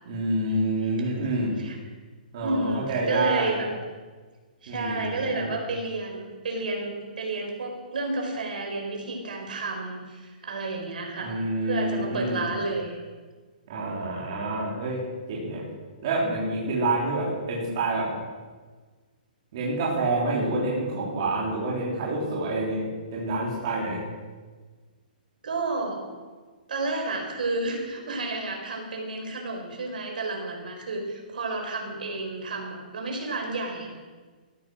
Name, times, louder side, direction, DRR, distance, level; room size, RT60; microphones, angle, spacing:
voice 1, 0.1-1.5 2.3-3.6 4.7-5.5 11.2-12.5 13.7-15.0 15.3-15.6 16.0-18.1 19.5-24.0, right 2 dB, 30° right, -5 dB, 3.8 m, -27 dB
voice 2, 2.4-3.7 4.6-13.0 25.4-26.1 26.7-34.0, right 2 dB, 65° right, 1 dB, 5.2 m, -31 dB
17.0 x 13.0 x 6.4 m, 1.4 s
hypercardioid pair, 180°, 5 cm